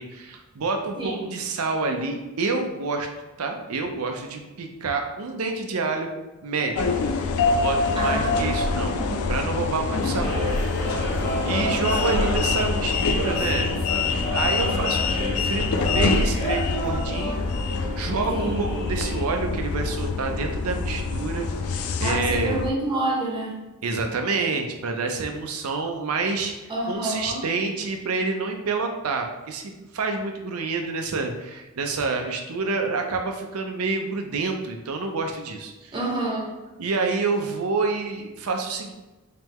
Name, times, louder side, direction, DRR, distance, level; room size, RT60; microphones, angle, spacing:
voice 1, 0.0-3.1 3.4-6.1 6.4-6.9 7.5-8.9 9.3-10.5 10.9-13.7 14.3-22.6 23.8-26.5 26.9-35.9 36.8-38.9, right 4 dB, 85° right, 4 dB, 0.6 m, -28 dB
sound 1, 6.8-22.7, left 4 dB, 80° left, 0.4 m, -25 dB
voice 2, 7.9-9.3 9.9-10.3 12.1-12.2 18.3-18.6 22.0-23.6 26.7-27.4 35.9-36.5, right 2 dB, 25° right, -3 dB, 0.9 m, -29 dB
sound 2, 10.2-19.2, equal, 50° left, 1.2 m, -32 dB
3.3 x 3.1 x 3.5 m, 1.1 s
head